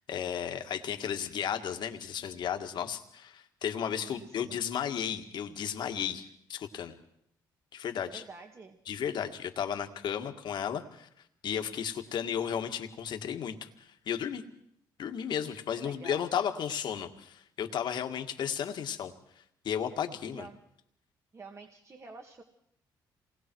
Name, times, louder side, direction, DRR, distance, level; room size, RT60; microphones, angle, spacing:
voice 1, 0.0-6.9 7.7-8.2 8.9-11.1 11.4-14.4 15.0-19.1 19.6-20.5, left 8 dB, 65° left, 7 dB, 1.9 m, -34 dB
voice 2, 4.0-4.6 8.1-8.8 15.8-16.3 20.2-20.6 21.3-22.4, right 4 dB, 35° right, 4 dB, 2.0 m, -48 dB
27.5 x 20.5 x 4.7 m, 0.72 s
cardioid pair, 80°, 8 cm